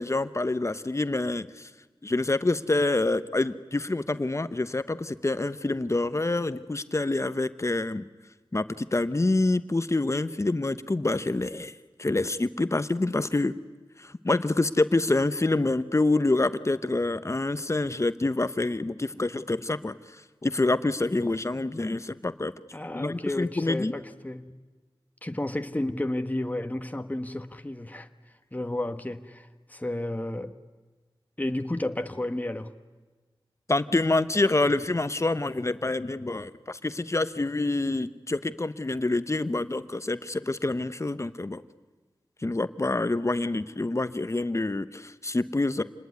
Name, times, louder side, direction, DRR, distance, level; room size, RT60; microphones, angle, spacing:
voice 1, 0.0-1.7 2.0-8.0 8.5-11.7 12.0-13.5 14.0-20.0 20.4-22.5 22.9-23.9 33.7-41.6 42.4-45.8, left 2 dB, 35° left, 13 dB, 1.0 m, -27 dB
voice 2, 22.7-24.5 25.2-30.5 31.4-32.7, left 1 dB, 20° left, 8 dB, 1.4 m, -32 dB
28.0 x 20.0 x 9.6 m, 1.3 s
wide cardioid pair, 80°, 9 cm